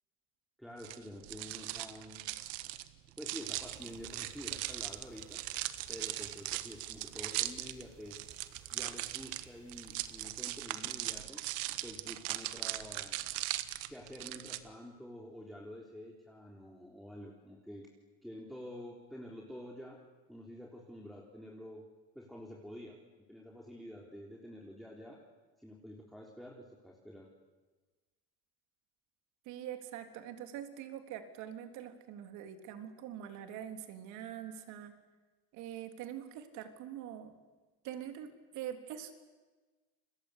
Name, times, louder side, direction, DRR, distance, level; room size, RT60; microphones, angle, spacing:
voice 1, 0.6-2.3 3.2-5.4 5.9-8.2 8.7-11.4 11.8-13.2 13.9-17.9 18.2-20.0 20.3-21.9 22.1-23.0 23.3-25.2 25.6-27.3, equal, ahead, -2 dB, 3.8 m, -48 dB
sound 1, 0.8-14.6, right 16 dB, 85° right, 1.5 m, -39 dB
Quebrada La Vieja - Canto de aves entre el bosque, 3.5-10.3, right 5 dB, 40° right, 4.9 m, -60 dB
voice 2, 29.5-34.9 35.5-37.3 37.8-39.2, right 10 dB, 70° right, 6 dB, 3.6 m, -44 dB
29.5 x 22.5 x 8.3 m, 1.3 s
supercardioid pair, 110°, 31 cm